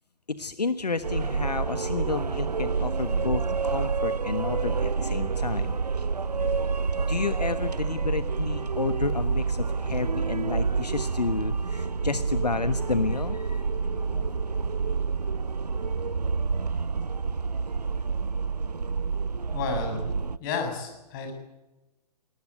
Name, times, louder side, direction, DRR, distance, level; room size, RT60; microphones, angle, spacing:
voice 1, 0.3-5.8 7.0-14.4, left 4 dB, 75° left, 12 dB, 1.3 m, -31 dB
sound 1, 1.0-20.4, right 5 dB, 75° right, 0.8 m, -28 dB
voice 2, 19.5-20.1 20.4-21.3, left 4 dB, 30° left, 5 dB, 7.1 m, -31 dB
21.5 x 19.0 x 9.3 m, 1.0 s
figure-of-eight pair, 125°, 21 cm